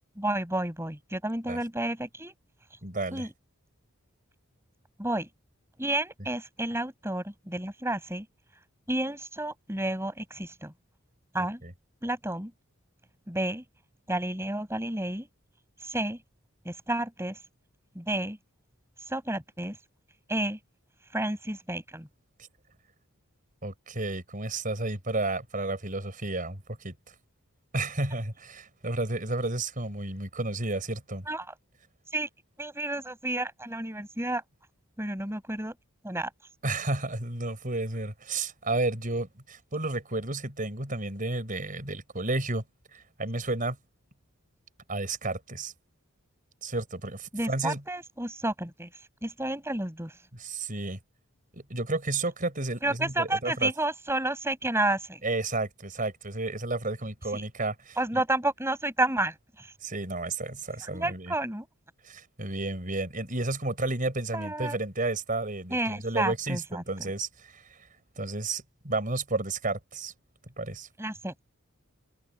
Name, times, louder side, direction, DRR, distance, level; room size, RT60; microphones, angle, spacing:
voice 1, 0.2-2.3 2.7-2.8 3.1-3.3 5.0-5.3 5.8-8.3 8.9-10.7 11.3-11.6 12.0-12.5 13.3-13.6 14.1-15.3 15.8-16.2 16.6-17.4 17.9-18.4 19.0-19.8 20.3-20.6 21.1-22.1 31.3-31.5 32.1-32.3 32.6-34.4 35.0-35.7 36.0-36.3 47.3-50.2 52.8-55.2 57.3-57.4 58.0-59.7 60.8-61.6 64.3-64.7 65.7-66.8 71.0-71.3, right 1 dB, 10° right, 6.6 m, -31 dB
voice 2, 2.8-3.3 23.6-27.1 27.7-31.3 36.6-42.6 42.9-43.8 44.9-45.7 46.6-47.8 50.3-51.0 51.5-53.7 55.2-58.2 59.8-61.3 62.0-67.8 68.2-70.1 70.6-70.9, right 2 dB, 40° right, 5.7 m, -32 dB
open air
head